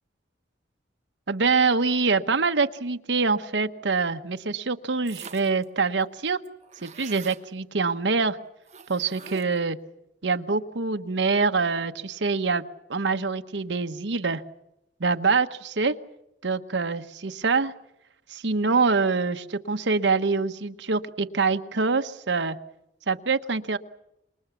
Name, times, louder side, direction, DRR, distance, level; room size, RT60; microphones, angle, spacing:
voice 1, 1.3-6.4 6.8-8.4 8.9-9.8 10.2-12.6 12.9-14.4 15.0-16.0 16.4-17.7 18.3-22.6 23.1-23.8, right 4 dB, 85° right, 8 dB, 1.1 m, -25 dB
sound 1, 5.1-5.6 6.0-6.1 6.3-7.4 8.7-9.7, right 6 dB, 40° right, 1.4 m, -43 dB
26.5 x 22.0 x 7.2 m, 0.83 s
head